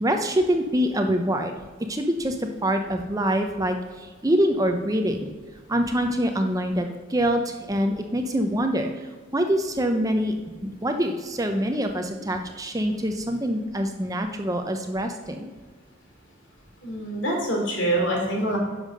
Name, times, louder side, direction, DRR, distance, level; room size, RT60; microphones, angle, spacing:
voice 1, 0.0-1.5 1.9-5.3 5.7-10.3 10.8-15.5, equal, 15° right, 5 dB, 0.6 m, -25 dB
voice 2, 16.8-18.6, right 1 dB, 65° left, -1 dB, 2.9 m, -25 dB
10.0 x 5.7 x 6.5 m, 1.4 s
head